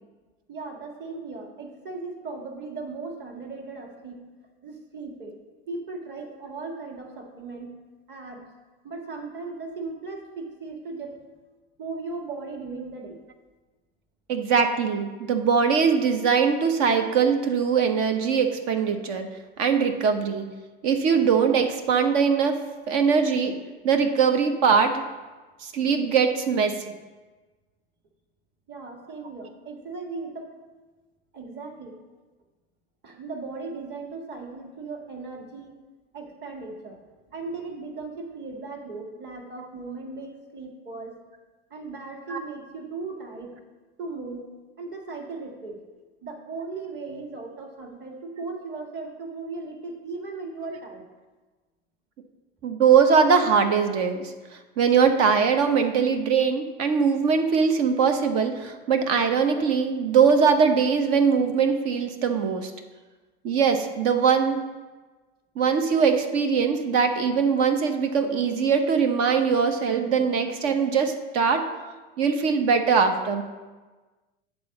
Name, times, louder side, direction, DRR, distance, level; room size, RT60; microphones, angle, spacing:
voice 1, 0.5-4.3 4.6-5.4 5.7-7.8 8.1-8.5 8.8-11.2 11.8-13.3 28.7-30.6 31.3-32.0 33.0-35.8 36.1-37.0 37.3-41.2 41.7-43.6 44.0-45.8 46.2-51.1, right 3 dB, 35° right, 1 dB, 1.7 m, -37 dB
voice 2, 14.3-19.3 19.6-20.5 20.8-22.6 22.9-23.6 23.8-24.9 25.6-26.8 42.3-42.4 52.6-54.3 54.8-62.7 63.4-64.6 65.6-71.7 72.2-73.4, right 6 dB, 55° right, 6 dB, 1.0 m, -21 dB
8.6 x 4.0 x 7.1 m, 1.3 s
hypercardioid pair, 95°, 30 cm